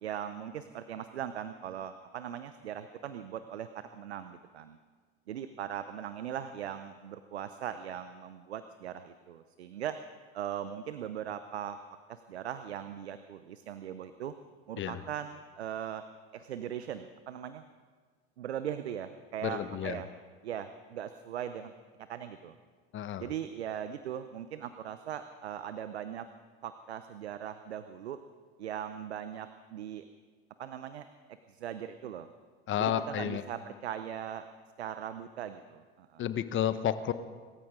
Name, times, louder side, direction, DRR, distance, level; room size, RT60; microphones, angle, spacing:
voice 1, 0.0-4.8 5.3-10.0 10.3-11.8 12.1-14.3 14.7-16.0 16.3-17.6 18.4-20.1 20.4-21.7 22.1-22.6 23.2-26.3 26.6-28.2 28.6-30.0 30.6-31.1 31.5-32.3 32.8-34.5 34.8-36.2, right 9 dB, 85° right, 11 dB, 0.8 m, -39 dB
voice 2, 19.4-20.0 22.9-23.3 32.7-33.4 36.2-37.1, left 10 dB, 40° left, 12 dB, 1.1 m, -31 dB
25.5 x 14.0 x 3.8 m, 1.5 s
hypercardioid pair, 80°, 32 cm